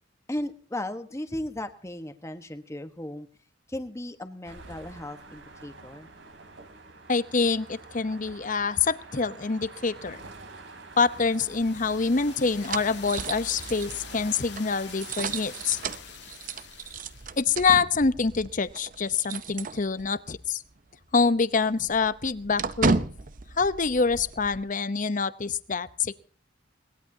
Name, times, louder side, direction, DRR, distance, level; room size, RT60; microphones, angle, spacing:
voice 1, 0.3-3.3 3.7-6.1, left 1 dB, 15° left, 8 dB, 1.3 m, -36 dB
sound 1, 4.4-16.0, right 3 dB, 65° right, 3.3 m, -47 dB
voice 2, 7.1-10.2 11.0-15.8 17.4-20.6 21.1-23.0 23.6-26.1, left 4 dB, 40° left, 15 dB, 0.8 m, -26 dB
sound 2, 11.0-17.5, left 9 dB, 60° left, 1.6 m, -46 dB
sound 3, 11.5-20.3 20.6-20.8 21.1-24.6, right 4 dB, 45° right, 0.8 m, -34 dB
22.0 x 19.5 x 2.8 m, 0.41 s
head